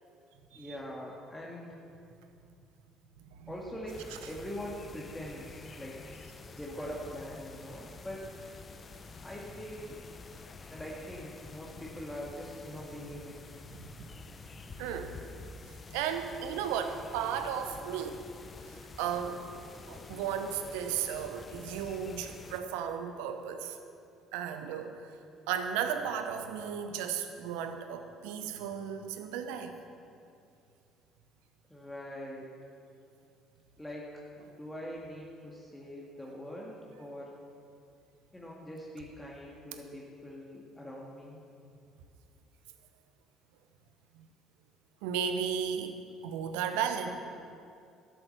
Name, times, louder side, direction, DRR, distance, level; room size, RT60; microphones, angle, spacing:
voice 1, 0.5-1.7 3.5-4.0 4.3-6.0 6.6-8.4 9.2-10.0 10.7-13.4 31.7-32.5 33.8-34.1 34.5-37.4 38.3-41.4, equal, 10° left, -4 dB, 2.0 m, -43 dB
sound 1, 3.9-22.6, left 4 dB, 35° left, 0.8 m, -49 dB
voice 2, 14.8-15.2 15.6-18.2 19.0-19.4 19.9-23.8 24.3-25.0 25.5-29.7 45.0-46.0 46.2-47.2, right 8 dB, 75° right, 8 dB, 0.9 m, -34 dB
12.5 x 7.8 x 6.8 m, 2.5 s
hypercardioid pair, 55°, 0 cm